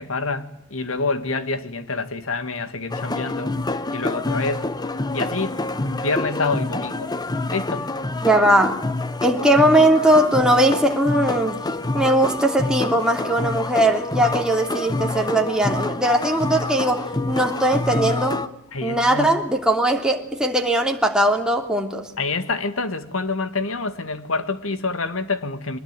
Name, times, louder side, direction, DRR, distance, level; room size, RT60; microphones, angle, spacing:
voice 1, 0.0-3.5 3.9-4.7 5.1-7.1 7.5-7.9 18.7-19.3 22.2-25.8, left 3 dB, 75° left, 1.9 m, -27 dB
sound 1, 2.9-18.5, left 2 dB, 20° left, 1.0 m, -27 dB
voice 2, 8.2-8.8 9.2-11.6 11.9-18.4 18.8-22.1, right 1 dB, 5° right, 2.9 m, -19 dB
24.0 x 20.5 x 9.1 m
head